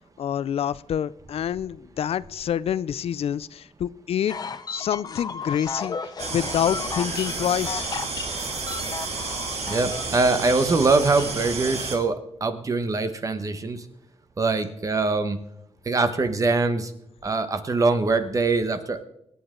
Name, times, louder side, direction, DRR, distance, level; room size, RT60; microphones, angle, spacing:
voice 1, 0.2-4.4 4.7-6.0 6.3-7.9, left 9 dB, 70° left, 18 dB, 0.4 m, -27 dB
sound 1, 4.3-11.8, left 5 dB, 40° left, 0.7 m, -35 dB
sound 2, 6.2-12.0, right 4 dB, 85° right, 2.4 m, -31 dB
voice 2, 9.7-13.8 14.4-15.4 15.8-16.9 17.2-19.0, right 3 dB, 35° right, 9 dB, 1.1 m, -23 dB
25.0 x 9.7 x 3.8 m, 0.78 s
wide cardioid pair, 160°, 10 cm